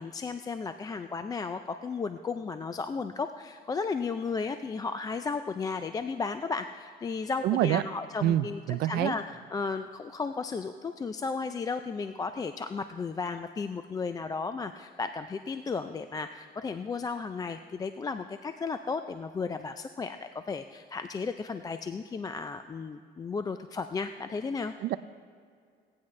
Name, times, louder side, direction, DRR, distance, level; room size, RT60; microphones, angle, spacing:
voice 1, 0.0-24.7, left 4 dB, 20° left, 9 dB, 0.3 m, -34 dB
voice 2, 7.4-7.8 8.2-9.1 24.8-25.0, right 13 dB, 70° right, 16 dB, 0.4 m, -26 dB
17.0 x 9.5 x 3.2 m, 2.2 s
cardioid pair, 110°, 17 cm